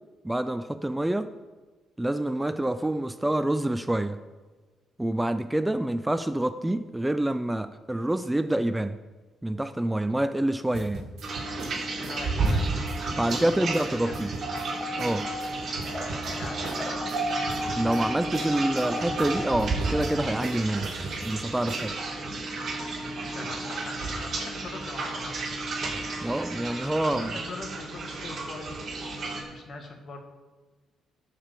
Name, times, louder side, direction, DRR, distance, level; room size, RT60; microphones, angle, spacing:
voice 1, 0.2-1.3 2.0-4.2 5.0-9.0 9.4-11.0 13.1-14.3 15.0-15.3 17.8-20.9 21.2-22.0 26.2-27.3, right 1 dB, 10° right, 12 dB, 0.4 m, -27 dB
sound 1, 10.7-13.8 14.1-14.7 15.0-15.1 15.4-17.2 17.5-18.0 18.3-21.3 21.7-21.9, right 3 dB, 85° right, 1.8 m, -39 dB
sound 2, 11.2-29.4, right 3 dB, 50° right, 4.2 m, -32 dB
voice 2, 12.1-12.7 13.3-14.2 16.1-17.1 22.9-25.5 27.0-29.2 29.5-30.2, left 3 dB, 50° left, 4 dB, 1.8 m, -42 dB
sound 3, 14.5-19.6, left 2 dB, 20° left, 1.6 m, -36 dB
12.0 x 5.1 x 7.5 m, 1.3 s
cardioid pair, 90°, 0 cm